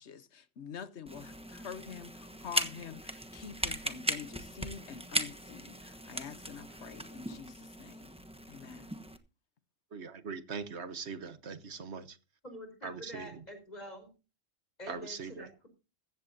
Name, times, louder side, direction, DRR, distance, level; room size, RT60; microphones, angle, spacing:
voice 1, 0.0-8.1 8.5-9.0, left 7 dB, 65° left, 1.2 m, -46 dB
sound 1, 1.1-9.2, right 1 dB, 5° right, 1.0 m, -38 dB
voice 2, 9.9-12.2 12.8-13.4 14.9-15.5, right 5 dB, 60° right, 1.4 m, -41 dB
voice 3, 12.4-14.1 14.8-15.7, equal, 35° left, 4.7 m, -46 dB
15.5 x 14.5 x 2.7 m
omnidirectional pair, 1.3 m